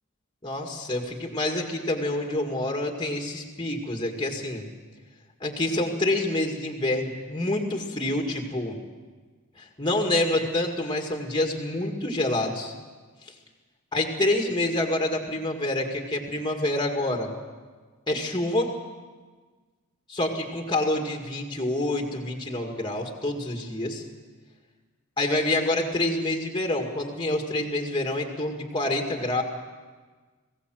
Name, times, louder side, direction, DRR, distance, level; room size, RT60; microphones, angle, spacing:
voice 1, 0.4-4.6 5.4-8.8 9.6-12.7 13.9-17.3 18.1-18.7 20.1-24.0 25.2-29.4, left 1 dB, 20° left, 3 dB, 2.0 m, -27 dB
21.0 x 16.5 x 7.7 m, 1.4 s
head